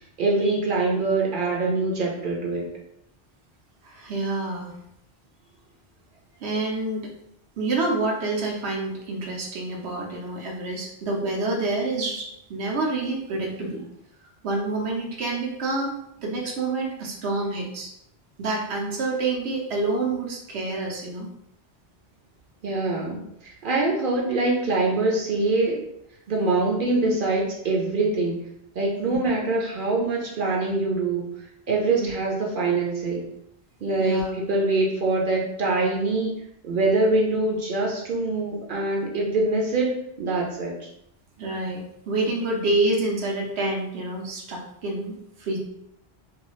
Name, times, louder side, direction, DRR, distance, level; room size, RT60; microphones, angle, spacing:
voice 1, 0.2-2.7 22.6-25.8 26.3-28.4 28.8-31.3 31.7-33.3 33.8-36.3 36.6-40.9, right 2 dB, 60° right, -1 dB, 0.7 m, -24 dB
voice 2, 3.8-4.7 6.4-7.1 7.6-13.8 14.4-17.9 18.4-21.3 29.0-29.2 31.9-32.1 34.0-34.3 41.4-45.6, right 2 dB, 85° right, 0 dB, 0.9 m, -28 dB
2.6 x 2.3 x 3.0 m, 0.75 s
omnidirectional pair, 1.1 m